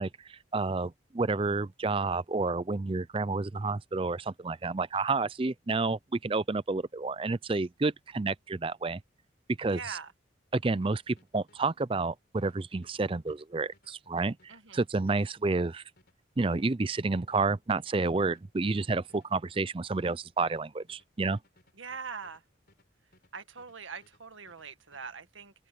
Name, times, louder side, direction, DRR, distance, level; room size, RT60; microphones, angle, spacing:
voice 1, 0.0-9.0 9.6-10.0 10.5-14.4 14.7-15.8 16.4-21.4, right 3 dB, 30° right, 0.5 m, -30 dB
voice 2, 9.7-10.1 14.5-14.8 21.8-22.4 23.3-25.5, right 5 dB, 85° right, 1.8 m, -42 dB
sound 1, 10.8-23.8 24.0-25.1, left 2 dB, 55° left, 4.7 m, -66 dB
open air
head